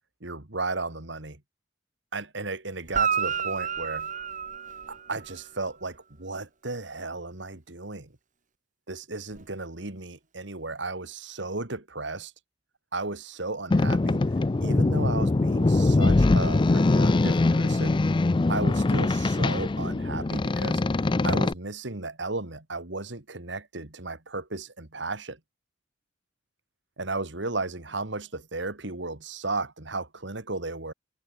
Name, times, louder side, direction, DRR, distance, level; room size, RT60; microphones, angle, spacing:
voice 1, 0.2-1.4 2.1-4.1 4.9-8.2 8.9-12.3 12.9-14.2 14.6-18.0 18.5-20.8 21.2-25.4 27.0-30.9, right 3 dB, 65° right, 2.5 m, -34 dB
Guitar, 2.9-5.5 9.3-9.4, right 7 dB, 45° right, 2.3 m, -30 dB
Boat Water vehicle, 13.7-21.5, left 2 dB, 25° left, 0.4 m, -22 dB
head